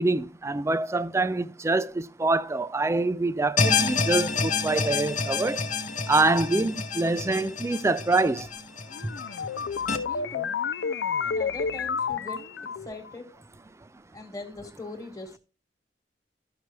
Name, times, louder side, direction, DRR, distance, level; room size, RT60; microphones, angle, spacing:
voice 1, 0.0-5.6 6.1-8.5, right 2 dB, 15° right, 0.4 m, -25 dB
sound 1, 3.6-10.0, left 5 dB, 45° left, 0.9 m, -28 dB
sound 2, 8.9-13.1, left 6 dB, 80° left, 0.4 m, -30 dB
voice 2, 10.0-10.5 11.2-12.4 12.8-13.3 14.1-15.4, left 2 dB, 20° left, 1.5 m, -41 dB
13.5 x 5.8 x 3.1 m
head